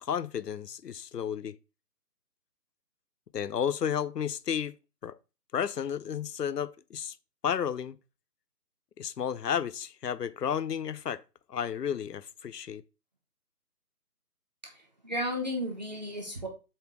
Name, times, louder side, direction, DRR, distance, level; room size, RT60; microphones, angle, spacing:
voice 1, 0.0-1.6 3.3-4.7 5.0-5.2 5.5-7.2 7.4-8.0 9.0-11.2 11.5-12.8, left 8 dB, 80° left, 0.7 m, -32 dB
voice 2, 14.6-16.5, equal, 25° right, 0.9 m, -34 dB
7.2 x 2.8 x 4.8 m
figure-of-eight pair, 160°, 48 cm